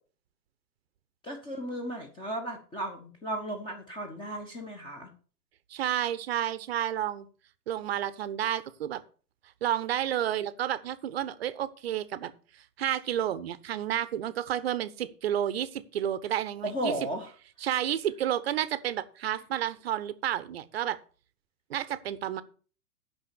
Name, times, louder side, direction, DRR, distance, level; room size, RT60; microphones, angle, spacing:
voice 1, 1.2-5.1 16.6-17.3, right 1 dB, 10° left, 3 dB, 0.9 m, -35 dB
voice 2, 5.7-7.3 7.7-9.0 9.6-12.3 12.8-16.9 17.6-21.0 21.7-22.4, right 11 dB, 40° right, 15 dB, 0.8 m, -31 dB
9.0 x 5.7 x 6.8 m, 0.40 s
figure-of-eight pair, 110°, 48 cm